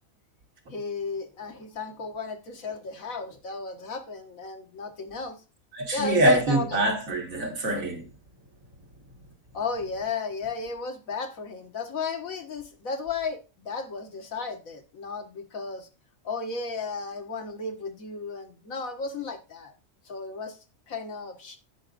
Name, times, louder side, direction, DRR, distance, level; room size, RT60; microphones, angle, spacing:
voice 1, 0.7-5.4 5.9-6.6 9.5-15.9 16.2-19.7 20.1-20.6 20.9-21.6, left 4 dB, 80° left, 1.8 m, -34 dB
voice 2, 5.7-8.1, right 1 dB, 75° right, 2.1 m, -24 dB
16.0 x 6.1 x 2.5 m
omnidirectional pair, 1.4 m